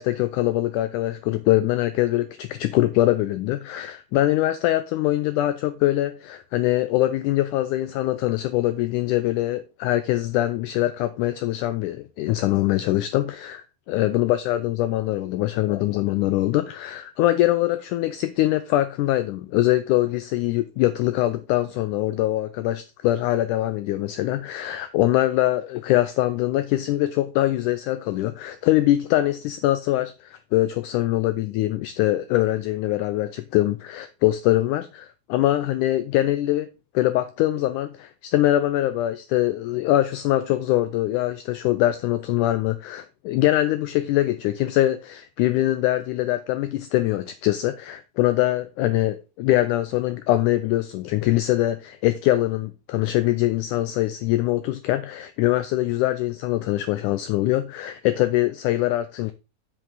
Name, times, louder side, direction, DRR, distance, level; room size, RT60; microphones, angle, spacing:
voice 1, 0.0-36.7 36.9-59.3, left 15 dB, 85° left, 1.8 m, -23 dB
7.4 x 7.4 x 3.9 m
omnidirectional pair, 4.1 m